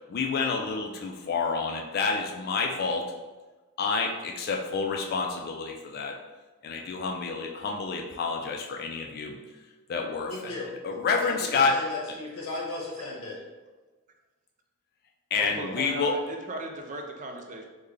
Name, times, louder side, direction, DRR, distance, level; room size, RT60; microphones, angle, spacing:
voice 1, 0.1-3.1 3.8-6.2 6.6-9.3 9.9-10.5 10.8-11.8 15.3-16.2, left 4 dB, 45° left, 1 dB, 0.3 m, -28 dB
voice 2, 10.2-10.7 11.2-13.4, left 2 dB, 70° left, -3 dB, 0.9 m, -36 dB
voice 3, 15.4-17.6, right 2 dB, 35° right, 3 dB, 0.4 m, -37 dB
3.6 x 2.2 x 3.2 m, 1.2 s
head